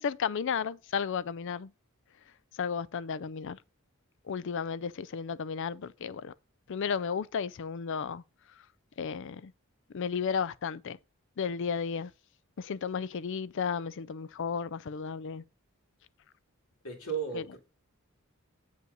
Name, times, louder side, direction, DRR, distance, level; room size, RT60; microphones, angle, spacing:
voice 1, 0.0-1.7 2.5-3.6 4.2-6.3 6.7-8.2 9.0-9.5 9.9-11.0 11.4-12.1 12.6-15.4 17.3-17.4, left 6 dB, 60° left, 0.4 m, -33 dB
voice 2, 16.8-17.6, right 6 dB, 85° left, 2.9 m, -35 dB
7.9 x 5.5 x 3.9 m
head